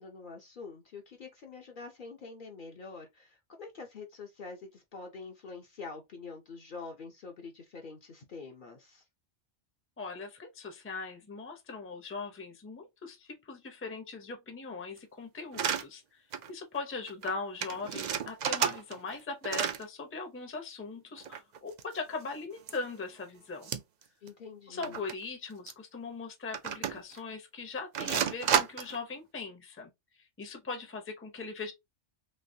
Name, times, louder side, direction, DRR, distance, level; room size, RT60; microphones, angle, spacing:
voice 1, 0.0-9.0 24.2-25.0, left 4 dB, 55° left, 0.7 m, -46 dB
voice 2, 10.0-16.2 16.5-23.7 24.7-29.9 30.2-31.7, left 4 dB, 15° left, 0.6 m, -40 dB
sound 1, 15.5-15.8 16.3-16.5 16.8-16.9 17.1-17.3 17.6-19.2 19.4-19.8 21.2-22.2 22.7-22.8 23.6-24.0 24.3-24.4 24.8-25.1 25.7-25.8 26.5-27.2 27.9-29.0, right 8 dB, 60° right, 0.5 m, -31 dB
3.1 x 2.9 x 2.6 m
omnidirectional pair, 1.2 m